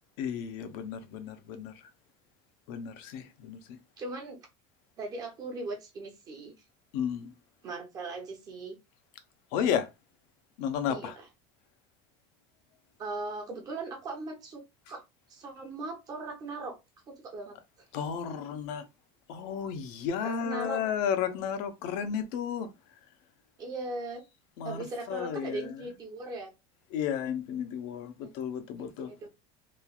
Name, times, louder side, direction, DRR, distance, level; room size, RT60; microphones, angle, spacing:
voice 1, 0.2-1.7 2.7-3.6 6.9-7.3 9.5-9.9 10.6-11.1 17.9-18.8 19.3-22.7 24.6-24.8 25.1-25.8 26.9-29.1, left 8 dB, 60° left, 0.6 m, -32 dB
voice 2, 4.0-4.4 5.0-6.5 7.6-8.8 10.9-11.3 13.0-14.6 14.9-15.0 15.3-16.7 17.1-17.6 20.2-20.8 23.6-24.2 24.6-26.5 28.2-28.3 28.8-29.3, right 2 dB, 30° right, 0.8 m, -39 dB
3.1 x 2.3 x 2.3 m
cardioid pair, 165°, 13 cm